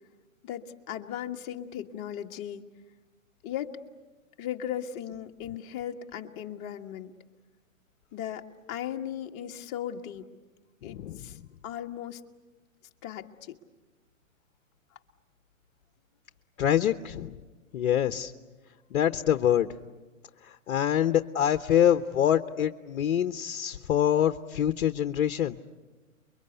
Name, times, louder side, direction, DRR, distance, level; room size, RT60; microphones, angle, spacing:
voice 1, 0.4-2.7 3.4-3.8 4.4-7.1 8.1-10.3 10.8-11.4 11.6-12.2 13.0-13.6, left 10 dB, 35° left, 3 dB, 1.6 m, -37 dB
voice 2, 10.9-11.2 16.6-17.4 17.7-18.3 18.9-19.7 20.4-25.6, left 10 dB, 60° left, 10 dB, 1.0 m, -25 dB
29.5 x 23.5 x 8.1 m, 1.2 s
hypercardioid pair, 130°, 41 cm